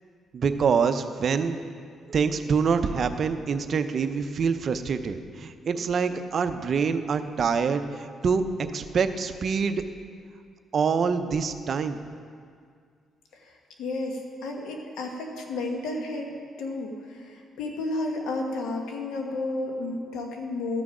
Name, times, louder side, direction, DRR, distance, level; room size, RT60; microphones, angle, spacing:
voice 1, 0.3-1.6 2.1-9.8 10.7-12.0, right 5 dB, 55° right, 9 dB, 0.6 m, -25 dB
voice 2, 13.3-20.8, left 2 dB, 85° left, 2 dB, 1.3 m, -32 dB
13.0 x 6.1 x 4.9 m, 2.1 s
cardioid pair, 90°, 0 cm